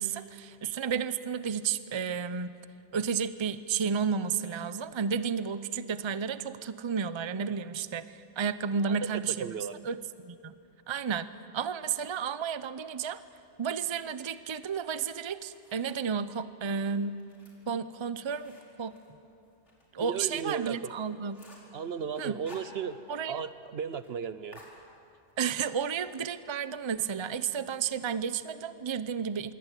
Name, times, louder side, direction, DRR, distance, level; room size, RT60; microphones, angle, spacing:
voice 1, 0.0-2.5 2.9-9.4 9.8-10.5 10.9-13.2 13.6-17.2 17.7-18.9 19.9-21.4 22.2-22.4 23.1-23.4 25.4-29.5, right 6 dB, 30° right, 13 dB, 0.6 m, -32 dB
voice 2, 8.8-9.8 20.0-20.9 21.7-23.0 23.2-24.6, right 7 dB, 65° right, 14 dB, 1.0 m, -35 dB
sound 1, 15.0-16.1 16.6-19.8 20.2-20.3 20.7-20.8 21.0-21.8 22.1-23.2 23.5-23.6 23.9-24.1 24.5-25.4, left 1 dB, 80° left, 5.2 m, -55 dB
26.0 x 22.5 x 8.3 m, 2.5 s
omnidirectional pair, 1.2 m